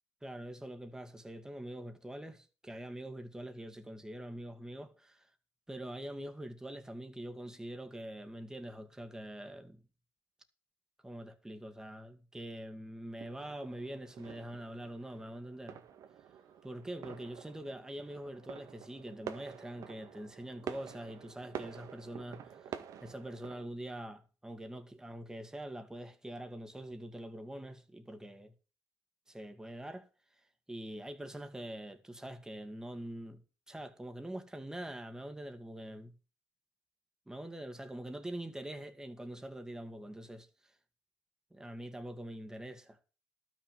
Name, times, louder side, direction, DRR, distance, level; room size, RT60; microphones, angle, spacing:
voice 1, 0.2-5.3 5.7-9.8 11.0-15.8 16.6-28.5 29.3-30.1 30.7-36.2 37.3-40.8 41.5-43.0, right 1 dB, 10° right, 2.2 m, -44 dB
sound 1, 13.2-23.7, right 8 dB, 65° right, 1.6 m, -48 dB
12.5 x 6.2 x 7.5 m
supercardioid pair, 80°, 7 cm